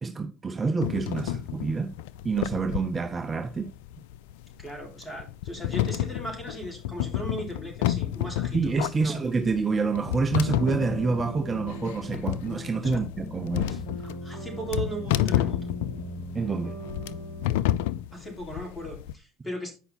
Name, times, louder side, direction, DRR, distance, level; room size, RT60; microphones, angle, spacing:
voice 1, 0.0-1.9 2.2-3.7 8.5-13.8 16.3-16.8, right 4 dB, 25° right, 0.7 m, -27 dB
sound 1, 0.8-19.1, left 12 dB, 75° left, 0.4 m, -31 dB
voice 2, 4.6-9.2 12.8-13.0 14.0-15.7 18.1-19.7, right 1 dB, 15° left, 4.1 m, -37 dB
sound 2, 10.6-17.6, left 1 dB, 55° left, 2.8 m, -39 dB
8.3 x 5.5 x 4.1 m
hypercardioid pair, 75°, 0 cm